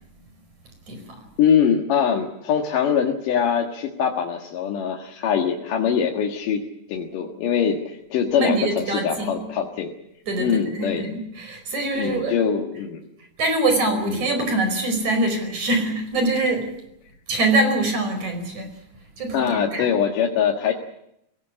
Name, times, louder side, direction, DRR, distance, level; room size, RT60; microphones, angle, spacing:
voice 1, 1.4-6.6 6.9-9.9 10.4-11.0 11.9-13.0 14.0-14.2 19.3-20.7, left 7 dB, 70° left, 1 dB, 3.2 m, -23 dB
voice 2, 8.4-9.5 10.3-11.1 11.4-12.3 13.4-16.7 17.3-18.7 19.2-19.9, right 2 dB, 55° right, 6 dB, 6.2 m, -24 dB
23.0 x 18.0 x 8.8 m, 0.78 s
omnidirectional pair, 4.0 m